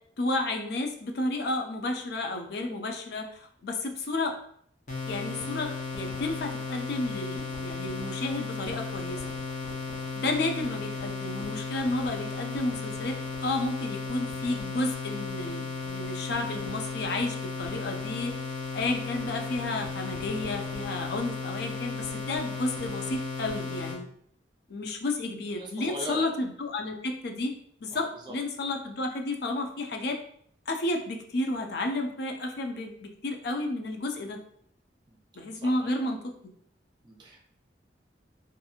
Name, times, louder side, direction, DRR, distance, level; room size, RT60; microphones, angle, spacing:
voice 1, 0.2-4.3 5.1-9.4 10.2-18.3 18.7-24.1 24.7-30.2 30.7-34.4 35.4-36.3, left 2 dB, 60° left, 3 dB, 0.4 m, -32 dB
sound 1, 4.9-24.0, left 4 dB, 45° left, 0.8 m, -35 dB
voice 2, 25.6-26.3 27.9-28.3 35.1-35.2 35.5-35.9 37.0-37.5, right 1 dB, 25° right, -1 dB, 0.5 m, -40 dB
2.8 x 2.6 x 2.3 m, 0.64 s
head